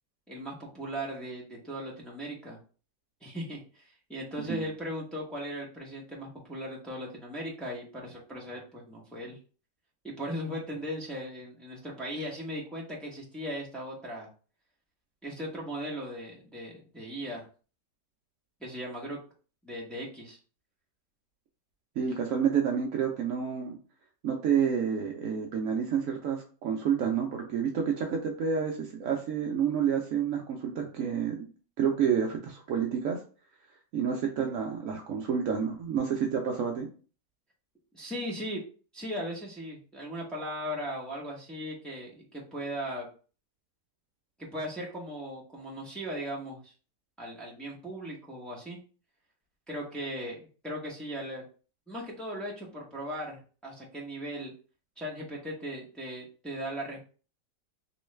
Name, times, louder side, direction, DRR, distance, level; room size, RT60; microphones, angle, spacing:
voice 1, 0.3-2.6 3.2-9.4 10.0-14.3 15.2-17.4 18.6-19.2 19.6-20.4 37.9-38.6 38.9-43.1 44.4-46.7 47.2-48.8 49.7-51.4 51.9-54.5 55.0-57.1, equal, ahead, -4 dB, 0.4 m, -38 dB
voice 2, 22.0-23.8 24.2-31.5 31.8-33.2 33.9-36.9, right 7 dB, 75° right, 1 dB, 0.8 m, -29 dB
3.1 x 3.0 x 3.1 m, 0.38 s
omnidirectional pair, 1.9 m